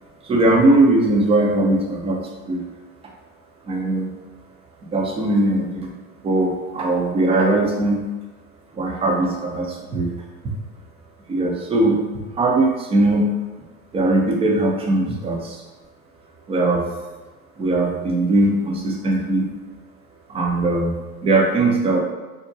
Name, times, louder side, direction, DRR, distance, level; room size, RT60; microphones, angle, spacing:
voice 1, 0.2-2.6 3.6-4.1 4.9-5.9 6.2-8.0 8.7-10.1 11.3-12.0 12.4-13.3 13.9-15.6 16.5-16.8 17.6-19.5 20.3-21.0 21.2-22.0, right 2 dB, 15° right, 0 dB, 0.4 m, -19 dB
3.8 x 2.2 x 2.5 m, 1.2 s
hypercardioid pair, 95°, 44 cm